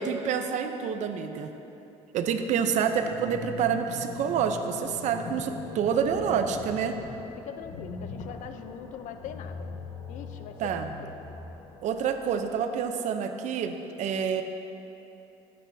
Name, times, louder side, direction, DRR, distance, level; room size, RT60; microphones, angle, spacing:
voice 1, 0.0-1.5 2.1-7.0 10.6-10.9 11.8-14.4, right 7 dB, 65° right, 7 dB, 0.7 m, -28 dB
sound 1, 2.5-12.4, left 4 dB, 50° left, 1.0 m, -41 dB
voice 2, 7.0-9.7 10.1-11.2, left 8 dB, 70° left, 8 dB, 0.6 m, -42 dB
13.5 x 8.6 x 2.7 m, 3.0 s
cardioid pair, 100°, 13 cm